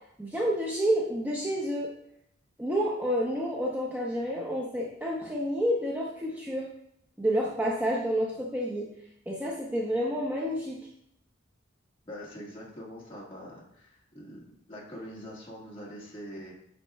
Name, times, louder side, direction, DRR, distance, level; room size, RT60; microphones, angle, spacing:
voice 1, 0.2-1.9 2.6-6.7 7.2-8.9 9.3-10.8, equal, 10° right, -3 dB, 0.6 m, -29 dB
voice 2, 12.0-16.5, equal, 25° left, -5 dB, 1.6 m, -44 dB
8.2 x 5.4 x 2.3 m, 0.74 s
head